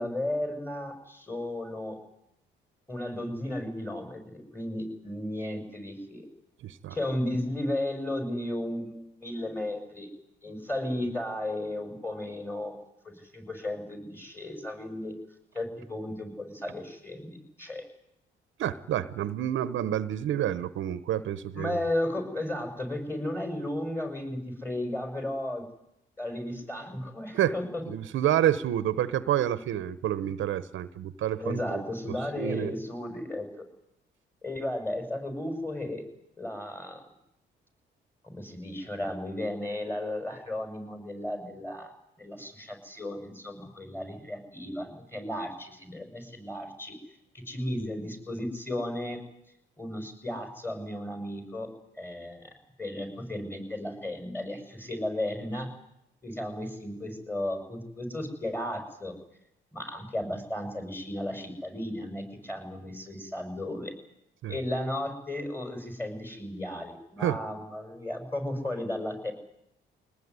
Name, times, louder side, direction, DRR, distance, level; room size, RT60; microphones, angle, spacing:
voice 1, 0.0-2.0 2.9-6.3 6.9-10.1 10.4-12.8 13.0-15.2 15.5-17.8 21.5-25.6 26.2-27.8 31.4-33.6 34.4-36.0 36.4-37.0 38.2-41.9 42.2-47.0 47.4-49.2 49.8-51.7 51.9-52.5 52.8-55.7 56.2-59.1 59.7-63.9 64.5-69.3, left 1 dB, 10° left, 5 dB, 6.9 m, -34 dB
voice 2, 6.6-6.9 18.6-21.8 27.3-27.5 27.9-31.8 32.4-32.7 64.4-64.5 67.2-67.4, right 11 dB, 75° right, 15 dB, 1.1 m, -28 dB
23.5 x 19.0 x 9.8 m, 0.80 s
cardioid pair, 90°, 20 cm